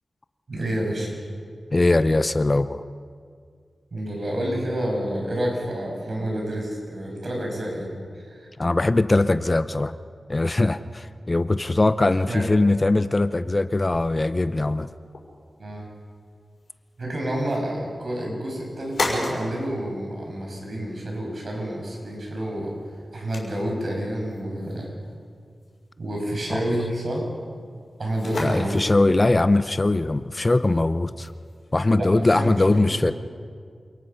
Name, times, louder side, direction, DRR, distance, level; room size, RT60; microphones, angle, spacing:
voice 1, 0.5-1.1 3.9-8.5 12.2-12.5 15.6-15.9 17.0-22.7 23.1-24.9 26.0-27.2 28.0-28.9 31.9-33.1, right 1 dB, 60° right, -1 dB, 6.7 m, -29 dB
voice 2, 1.7-2.8 8.6-9.9 10.3-14.9 26.5-26.6 28.4-31.3 31.7-33.1, left 2 dB, 30° left, 13 dB, 0.6 m, -21 dB
sound 1, 13.9-32.3, left 2 dB, 75° left, 5.6 m, -38 dB
27.5 x 19.0 x 5.7 m, 2.1 s
wide cardioid pair, 75°, 0 cm